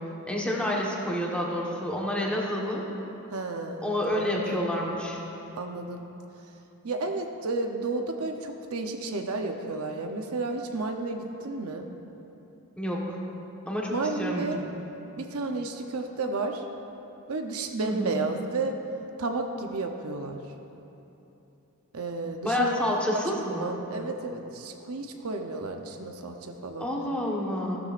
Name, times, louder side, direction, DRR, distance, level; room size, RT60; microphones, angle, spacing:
voice 1, 0.3-2.8 3.8-5.2 12.8-13.2 13.7-14.8 17.8-18.2 22.4-23.8 26.8-27.8, left 1 dB, 5° left, -3 dB, 1.3 m, -29 dB
voice 2, 3.3-4.6 5.5-6.0 6.8-11.9 13.9-14.7 15.2-16.6 17.3-18.7 19.2-20.4 21.9-22.7 23.5-26.9, right 3 dB, 70° right, 4 dB, 0.8 m, -32 dB
15.0 x 12.5 x 2.5 m, 3.0 s
head